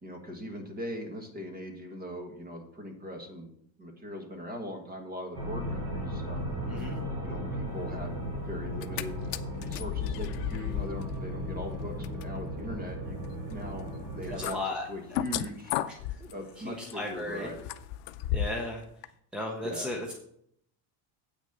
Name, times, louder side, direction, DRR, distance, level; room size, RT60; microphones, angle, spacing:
voice 1, 0.0-3.5 3.8-6.5 7.2-8.2 8.5-9.2 9.6-13.2 13.5-14.6 14.9-15.8 16.3-17.7 19.6-19.9, equal, 20° right, 3 dB, 1.6 m, -40 dB
sound 1, 5.3-14.5, equal, 50° right, 4.5 m, -36 dB
sound 2, 8.6-9.0 9.3-18.7 19.0-19.1, left 12 dB, 60° left, 0.6 m, -36 dB
voice 2, 14.3-14.9 16.2-17.5 18.3-18.8 19.3-20.1, left 2 dB, ahead, 0 dB, 0.5 m, -35 dB
8.4 x 6.3 x 5.4 m, 0.70 s
cardioid pair, 170°, 46 cm